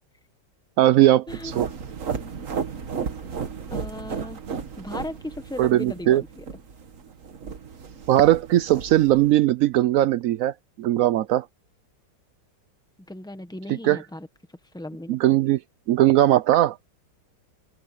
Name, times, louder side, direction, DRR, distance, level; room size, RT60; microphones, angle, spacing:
voice 1, 0.8-1.7 5.6-6.2 8.1-11.5 13.7-14.0 15.1-15.6 15.9-16.8, right 14 dB, 80° right, 0.7 m, -19 dB
sound 1, 1.3-9.3, right 6 dB, 45° right, 1.6 m, -34 dB
voice 2, 3.7-4.4 4.8-6.5 13.1-14.3 14.7-15.4, left 1 dB, 5° left, 1.0 m, -37 dB
omnidirectional pair, 2.0 m